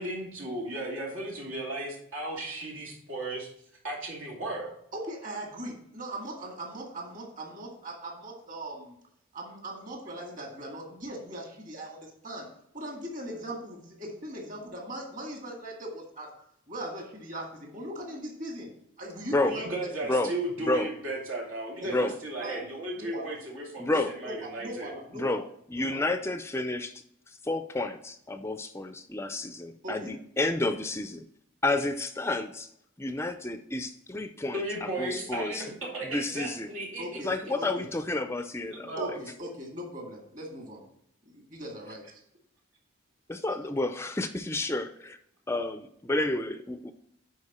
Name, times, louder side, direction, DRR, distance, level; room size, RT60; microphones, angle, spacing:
voice 1, 0.0-3.5 3.8-4.7 19.4-23.9 24.2-24.9 34.5-37.2 38.6-39.2, right 1 dB, 85° right, -1 dB, 2.5 m, -35 dB
voice 2, 4.9-9.0 9.3-12.5 12.7-16.3 16.7-18.7 19.0-19.7 21.8-22.0 22.4-22.6 23.0-23.3 23.9-25.4 25.8-26.0 29.8-30.1 37.0-37.8 39.0-40.8 41.3-42.2, right 1 dB, 40° right, 0 dB, 1.9 m, -39 dB
voice 3, 23.8-24.1 25.1-25.4 25.7-31.2 31.6-32.7 33.0-35.7 36.0-36.7 37.2-39.0 43.3-45.2 45.5-46.9, left 2 dB, 10° left, 9 dB, 0.3 m, -30 dB
9.8 x 4.3 x 4.2 m, 0.74 s
head